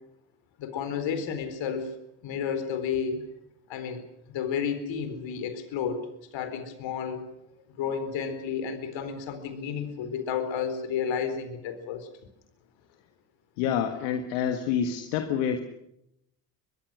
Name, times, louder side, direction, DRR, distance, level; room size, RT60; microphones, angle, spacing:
voice 1, 0.6-1.9 2.2-3.2 3.7-4.0 4.3-7.2 7.8-12.1, left 7 dB, 65° left, 9 dB, 4.4 m, -31 dB
voice 2, 13.6-15.6, left 8 dB, 80° left, 7 dB, 1.8 m, -27 dB
24.0 x 21.0 x 6.4 m, 0.80 s
hypercardioid pair, 60°, 48 cm